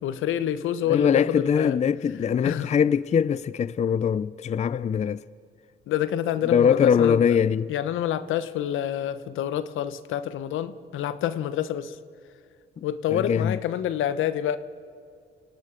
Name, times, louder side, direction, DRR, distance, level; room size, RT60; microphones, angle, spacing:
voice 1, 0.0-1.8 2.4-2.7 5.9-7.2 7.7-12.0 12.8-14.6, left 10 dB, 85° left, 1.0 m, -27 dB
voice 2, 0.9-5.2 6.5-7.7 13.1-13.6, left 7 dB, 35° left, 0.4 m, -22 dB
28.5 x 18.0 x 5.1 m
cardioid pair, 90°, 20 cm